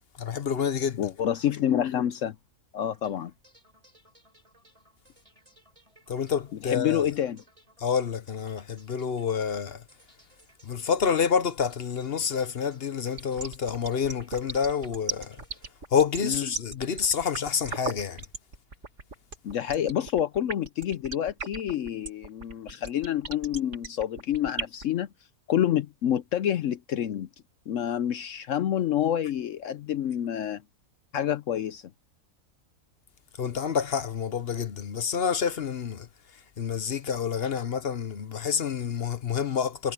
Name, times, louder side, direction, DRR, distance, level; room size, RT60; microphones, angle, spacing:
voice 1, 0.2-1.1 6.1-7.0 7.8-9.8 10.6-15.4 15.9-18.2 33.4-36.1 36.6-39.9, left 7 dB, 50° left, 1.0 m, -28 dB
voice 2, 1.0-2.4 2.7-3.3 6.6-7.4 16.2-16.5 19.4-25.1 25.5-27.3 27.7-30.6 31.1-31.8, left 10 dB, 65° left, 0.9 m, -28 dB
sound 1, 2.8-16.9, right 1 dB, 20° right, 6.9 m, -61 dB
sound 2, 13.1-24.8, right 4 dB, 50° right, 2.3 m, -36 dB
omnidirectional pair, 1.5 m